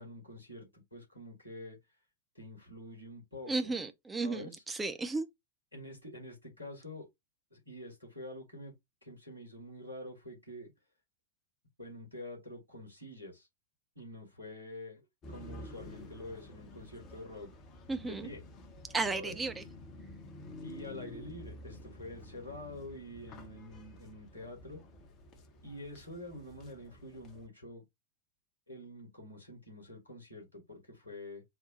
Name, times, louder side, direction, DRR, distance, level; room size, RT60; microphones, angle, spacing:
voice 1, 0.0-1.8 2.3-3.7 4.2-4.6 5.7-7.1 7.5-8.8 9.0-10.7 11.8-13.5 14.0-15.0 15.3-17.5 18.0-18.4 19.1-19.4 20.6-24.8 25.6-27.8 28.7-31.4, left 1 dB, 90° right, 2.2 m, -47 dB
voice 2, 3.4-5.3 17.9-18.3 18.9-19.6, right 3 dB, 10° right, 0.7 m, -34 dB
sound 1, 15.2-27.5, left 1 dB, 35° left, 0.9 m, -50 dB
4.1 x 2.2 x 4.3 m
figure-of-eight pair, 90°, 0 cm